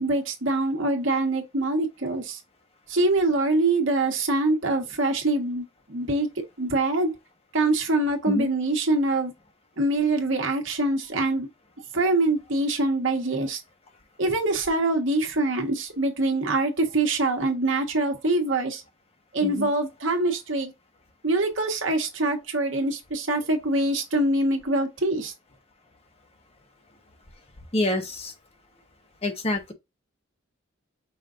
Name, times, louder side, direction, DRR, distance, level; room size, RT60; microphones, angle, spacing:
voice 1, 0.0-2.4 2.9-6.3 6.6-7.1 7.5-9.3 9.8-11.5 11.9-13.6 14.2-18.8 19.3-20.7 21.2-25.3, right 2 dB, 70° right, 1.4 m, -24 dB
voice 2, 27.7-28.3 29.2-29.7, left 1 dB, 30° left, 0.9 m, -26 dB
5.6 x 2.5 x 3.8 m
head